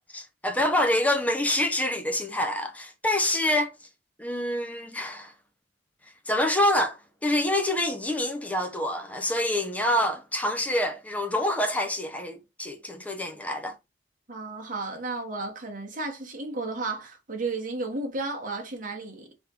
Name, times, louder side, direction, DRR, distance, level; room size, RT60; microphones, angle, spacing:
voice 1, 0.1-3.7 4.2-5.3 6.3-13.7, left 1 dB, 10° left, 0.7 m, -26 dB
voice 2, 14.3-19.3, right 3 dB, 45° right, 1.4 m, -33 dB
3.7 x 3.5 x 4.2 m
head